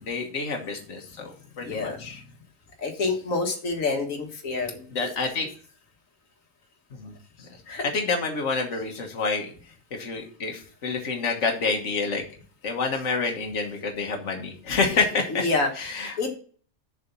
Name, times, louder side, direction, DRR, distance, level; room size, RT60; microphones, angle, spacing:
voice 1, 0.0-2.2 4.9-5.5 7.0-7.5 7.9-9.5 9.9-12.2 12.6-15.4 15.8-16.2, left 4 dB, 65° left, 2 dB, 1.6 m, -28 dB
voice 2, 1.6-2.0 2.8-4.8 7.7-7.9 14.9-15.0 15.3-16.4, left 3 dB, 80° left, 3 dB, 1.8 m, -28 dB
7.0 x 5.0 x 7.0 m, 0.43 s
omnidirectional pair, 1.4 m